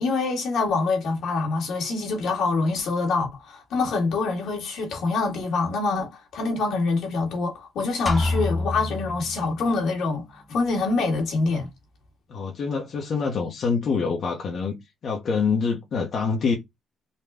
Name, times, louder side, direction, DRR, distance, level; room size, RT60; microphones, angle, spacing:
voice 1, 0.0-11.7, left 3 dB, 75° left, 1.7 m, -25 dB
sound 1, 8.1-9.9, left 2 dB, 10° left, 0.9 m, -28 dB
voice 2, 12.3-14.8 15.0-16.6, left 5 dB, 60° left, 0.9 m, -25 dB
4.0 x 2.3 x 3.5 m
cardioid pair, 90°, 0 cm